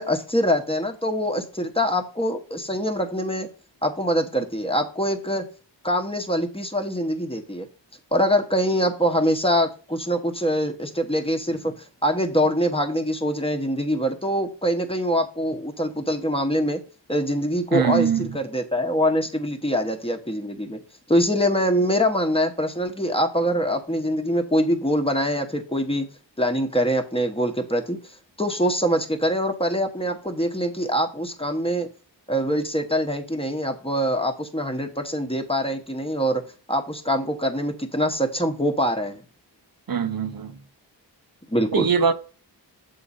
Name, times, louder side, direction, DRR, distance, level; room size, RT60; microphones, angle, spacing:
voice 1, 0.0-3.5 3.8-5.5 5.8-7.7 8.1-16.8 17.1-20.8 21.1-26.1 26.4-28.0 28.4-31.9 32.3-36.4 36.7-39.2 41.5-41.9, equal, 10° left, 1.1 m, -24 dB
voice 2, 17.7-18.3 39.9-40.6 41.7-42.1, right 6 dB, 50° right, 0.7 m, -22 dB
7.3 x 3.8 x 5.4 m
cardioid pair, 45°, 44 cm